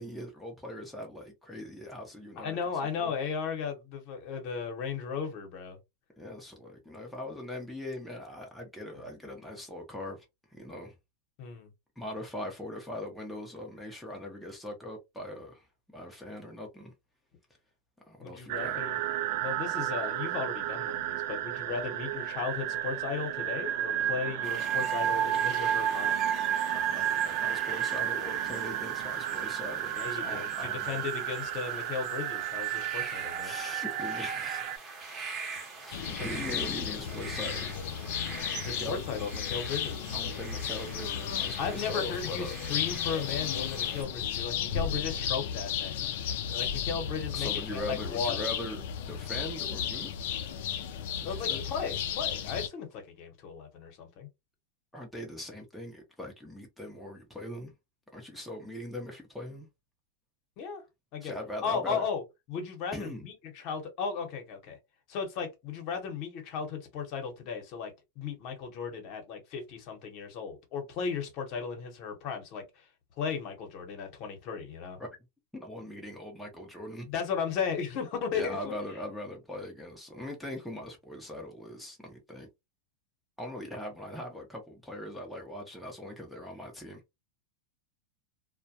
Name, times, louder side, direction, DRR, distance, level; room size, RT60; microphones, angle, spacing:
voice 1, 0.0-2.6 3.0-3.1 6.2-10.3 10.5-10.9 12.0-15.7 15.9-16.9 18.1-18.8 26.7-31.0 33.4-34.6 35.8-37.7 38.8-39.0 40.1-42.5 47.3-48.8 49.1-50.1 51.1-51.6 54.9-57.7 58.1-59.7 61.2-62.1 62.9-63.3 75.0-75.1 75.5-77.1 78.3-82.5 83.4-87.0, left 1 dB, ahead, 0.6 m, -41 dB
voice 2, 2.4-5.8 11.4-11.7 18.2-19.0 19.4-26.2 29.9-33.5 36.0-36.6 38.6-40.2 41.6-46.0 46.5-48.5 51.2-54.3 60.6-60.8 61.1-61.3 61.6-62.2 62.5-64.8 65.1-67.9 68.2-72.6 73.2-75.0 77.1-78.7, left 6 dB, 50° left, 0.9 m, -36 dB
sound 1, 18.5-34.8, right 11 dB, 55° right, 0.3 m, -32 dB
sound 2, 24.4-44.0, right 4 dB, 25° right, 0.9 m, -44 dB
sound 3, 35.9-52.7, left 9 dB, 70° left, 0.4 m, -34 dB
2.2 x 2.1 x 2.7 m
supercardioid pair, 130°, 0 cm